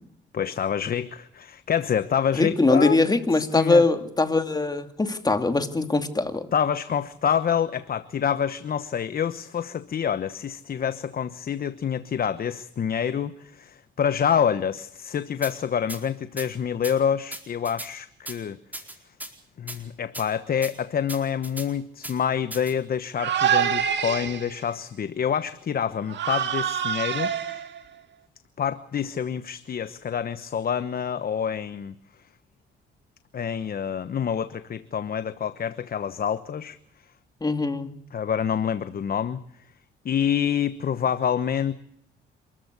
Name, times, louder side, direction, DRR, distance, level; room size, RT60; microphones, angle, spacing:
voice 1, 0.3-3.0 3.3-3.8 6.5-18.6 19.6-27.6 28.6-31.9 33.3-36.8 38.1-39.4 40.0-41.7, left 8 dB, 50° left, 12 dB, 1.1 m, -27 dB
voice 2, 2.3-6.5 37.4-37.9, left 3 dB, 20° left, 7 dB, 2.6 m, -22 dB
sound 1, 15.4-15.5 15.9-16.0 16.4-16.5 16.8-16.9 17.3-17.9 18.3-18.4 18.7-19.3 19.7-19.8 20.1-20.3 20.6-20.7 21.1-21.7 22.0-22.1 22.5-22.7, right 1 dB, 10° right, 4.4 m, -37 dB
sound 2, 23.2-24.6 26.1-27.9, right 9 dB, 65° right, 2.3 m, -26 dB
27.5 x 14.0 x 8.2 m, 0.72 s
cardioid pair, 90°, 20 cm